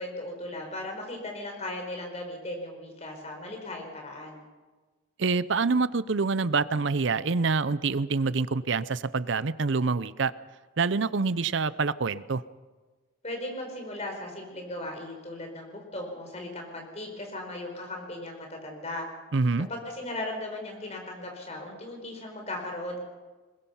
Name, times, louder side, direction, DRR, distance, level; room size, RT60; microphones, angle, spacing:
voice 1, 0.0-4.4 13.2-19.1 19.7-23.0, left 1 dB, 30° left, 2 dB, 4.5 m, -37 dB
voice 2, 5.2-10.3 10.8-12.4 19.3-19.7, right 4 dB, 60° right, 17 dB, 0.6 m, -26 dB
21.5 x 21.0 x 5.7 m, 1.3 s
head